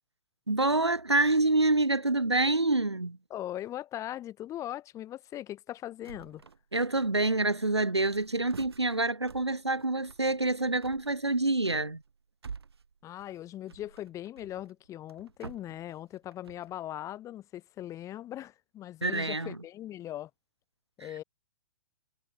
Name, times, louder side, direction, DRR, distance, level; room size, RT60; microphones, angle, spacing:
voice 1, 0.5-3.2 6.7-12.0 19.0-19.6, right 2 dB, 90° right, 1.5 m, -27 dB
voice 2, 3.3-6.4 13.0-20.3 21.0-21.2, left 13 dB, 20° left, 3.6 m, -40 dB
sound 1, 6.0-6.6 6.9-7.5 7.8-16.8, right 5 dB, 70° right, 3.9 m, -49 dB
figure-of-eight pair, 115°, 14 cm